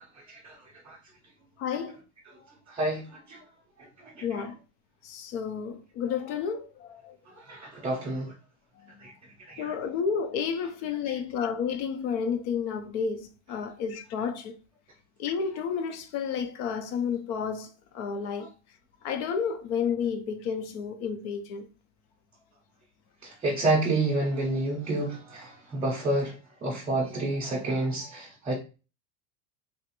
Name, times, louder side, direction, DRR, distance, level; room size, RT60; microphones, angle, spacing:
voice 1, 1.6-2.0 4.2-4.5 5.0-7.2 8.8-8.9 9.6-14.6 15.2-18.5 19.0-21.7, left 6 dB, 50° left, 0.6 m, -31 dB
voice 2, 2.7-3.4 4.0-4.4 7.5-8.3 9.0-9.1 9.5-9.7 11.1-11.2 18.4-18.5 23.2-26.3 26.6-28.5, right 2 dB, 15° right, 0.6 m, -29 dB
3.5 x 2.4 x 2.9 m
supercardioid pair, 155°, 41 cm